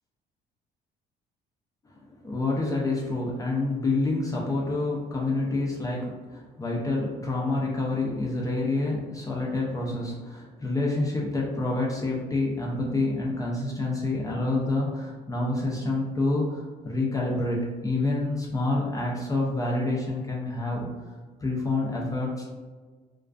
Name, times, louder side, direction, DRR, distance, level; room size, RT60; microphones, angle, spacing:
voice 1, 1.9-20.9 21.4-22.5, left 2 dB, 20° left, -4 dB, 0.4 m, -28 dB
2.4 x 2.3 x 2.2 m, 1.4 s
cardioid pair, 110°, 17 cm